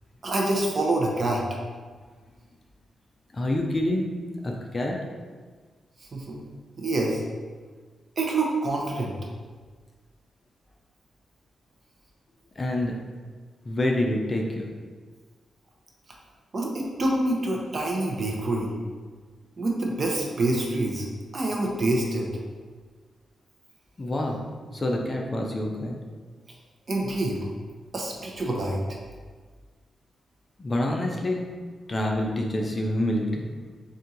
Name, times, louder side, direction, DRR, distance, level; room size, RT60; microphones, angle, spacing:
voice 1, 0.2-1.4 6.1-6.4 6.8-7.2 8.2-9.1 16.5-18.7 19.6-21.1 21.3-22.3 26.9-27.4 27.9-28.8, right 2 dB, 45° right, -1 dB, 0.8 m, -26 dB
voice 2, 3.3-4.2 4.4-5.0 12.6-12.9 13.6-14.7 24.0-24.4 24.7-26.0 30.6-31.5 31.9-33.4, left 1 dB, 30° left, 0 dB, 0.5 m, -27 dB
4.2 x 2.7 x 3.8 m, 1.5 s
cardioid pair, 105°, 0 cm